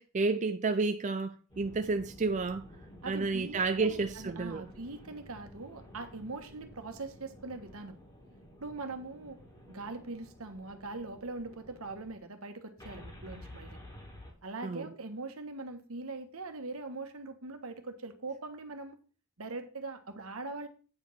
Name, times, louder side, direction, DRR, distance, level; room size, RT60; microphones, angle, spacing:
voice 1, 0.0-2.6 3.1-4.6 14.6-14.9, right 3 dB, 35° right, 0.5 m, -31 dB
sound 1, 1.5-12.1 12.8-14.3, equal, 20° left, 2.7 m, -52 dB
voice 2, 3.0-8.0 8.6-9.4 9.7-13.8 14.4-19.0 19.4-20.7, right 3 dB, 75° right, 1.3 m, -42 dB
9.0 x 4.8 x 5.7 m
head